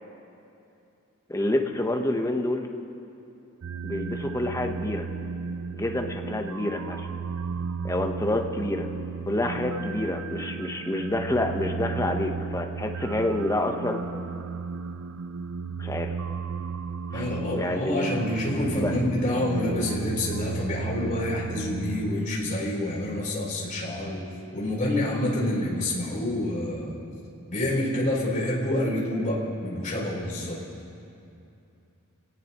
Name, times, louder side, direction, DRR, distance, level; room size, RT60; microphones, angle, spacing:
voice 1, 1.3-2.7 3.8-5.1 5.7-7.1 7.8-8.9 9.3-14.0 15.8-16.1 17.1-17.3 17.5-18.2 18.7-18.9, left 1 dB, 15° left, 3 dB, 1.0 m, -28 dB
sound 1, 3.6-22.3, right 5 dB, 65° right, 0.5 m, -34 dB
voice 2, 17.1-24.2 24.5-26.9 27.5-30.6, left 1 dB, 35° left, -5 dB, 3.9 m, -27 dB
26.0 x 18.0 x 3.0 m, 2.7 s
head